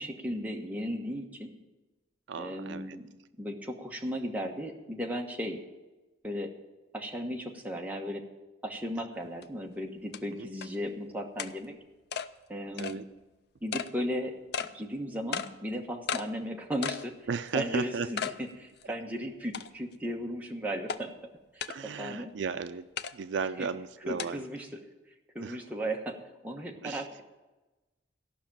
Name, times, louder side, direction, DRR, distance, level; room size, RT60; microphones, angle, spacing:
voice 1, 0.0-1.5 2.4-3.0 3.4-5.6 6.2-6.5 6.9-8.2 8.6-11.7 12.5-13.0 13.6-14.3 14.6-17.1 17.5-18.2 18.6-21.1 21.5-22.3 24.1-24.7 25.3-26.2 26.4-27.2, equal, 10° right, 1 dB, 1.2 m, -35 dB
voice 2, 2.3-3.0 10.3-10.5 12.8-13.0 17.3-18.1 18.8-18.9 21.7-22.9 23.1-24.4 25.4-25.6 26.8-27.1, right 5 dB, 65° right, 11 dB, 0.4 m, -35 dB
sound 1, 9.4-9.5 10.1-10.2 10.6-10.7 11.4-11.5 12.1-12.3 12.8-13.0 13.7-13.9 14.5-14.7 15.3-15.5 16.1-16.3 16.8-17.1 17.5-17.6 18.2-18.4 18.8-18.9 19.5-19.9 20.9-21.0 21.6-21.8 23.0-23.1 24.2-24.3, left 7 dB, 60° left, 0.5 m, -34 dB
14.5 x 6.0 x 8.7 m, 1.1 s
head